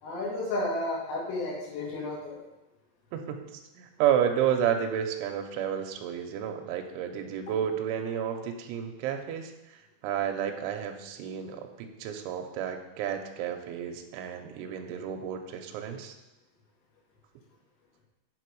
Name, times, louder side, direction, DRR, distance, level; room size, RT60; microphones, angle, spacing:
voice 1, 0.0-2.4, left 2 dB, 80° left, -5 dB, 4.8 m, -32 dB
voice 2, 3.8-9.5 10.0-16.1, right 9 dB, 80° right, 4 dB, 3.0 m, -31 dB
8.3 x 6.9 x 4.7 m, 0.99 s
omnidirectional pair, 5.8 m